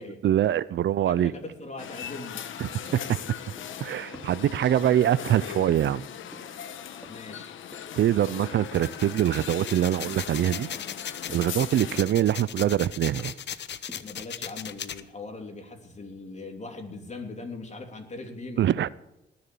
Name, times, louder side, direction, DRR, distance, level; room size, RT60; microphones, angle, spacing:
voice 1, 0.2-1.3 2.6-3.2 3.8-6.0 7.9-10.7 11.3-13.3 18.6-18.9, right 11 dB, 70° right, 0.5 m, -24 dB
voice 2, 1.0-2.4 4.8-5.1 7.1-7.5 14.0-18.9, left 3 dB, 35° left, 3.2 m, -40 dB
sound 1, 1.8-12.1, left 9 dB, 90° left, 1.1 m, -39 dB
sound 2, 2.9-3.9 4.1-5.7 6.3-6.6 7.0-7.3 7.7-8.0 8.4-9.1 9.4-9.7 10.1-10.4 10.7-11.0 11.3-13.5 13.9-14.2, equal, 5° left, 2.6 m, -50 dB
sound 3, 8.6-15.0, left 9 dB, 65° left, 0.9 m, -37 dB
19.5 x 7.1 x 7.0 m
cardioid pair, 80°, 20 cm